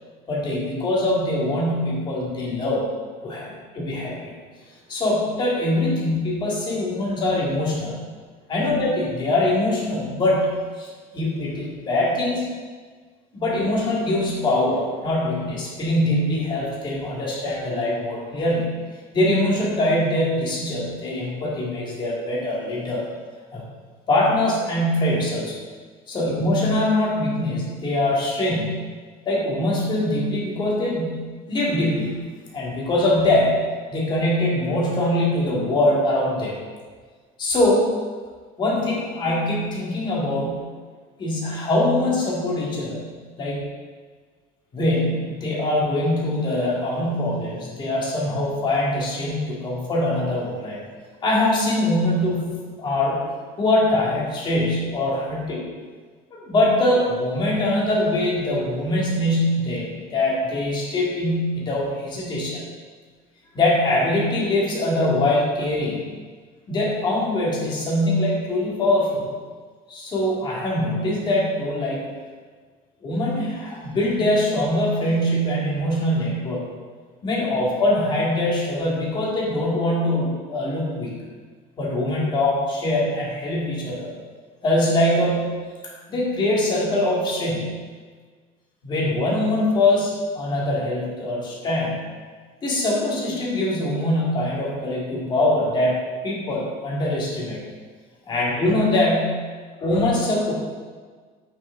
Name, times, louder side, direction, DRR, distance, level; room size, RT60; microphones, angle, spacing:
voice 1, 0.3-2.9 3.2-4.4 4.9-8.0 8.5-10.9 11.1-12.5 13.3-18.7 19.1-23.0 23.5-23.6 24.1-25.6 26.1-28.8 29.3-32.2 32.5-33.6 33.9-36.6 37.4-37.9 38.6-40.6 41.2-43.6 44.7-50.8 51.2-53.2 53.6-55.6 56.3-62.6 63.5-66.0 66.7-69.3 69.9-72.1 73.0-76.6 77.2-81.1 81.8-84.1 84.6-85.6 86.1-87.8 88.8-92.0 92.6-97.6 98.3-99.5 99.8-100.5, left 1 dB, 30° left, -4 dB, 2.1 m, -23 dB
8.5 x 6.1 x 3.9 m, 1.5 s
cardioid pair, 155°, 15 cm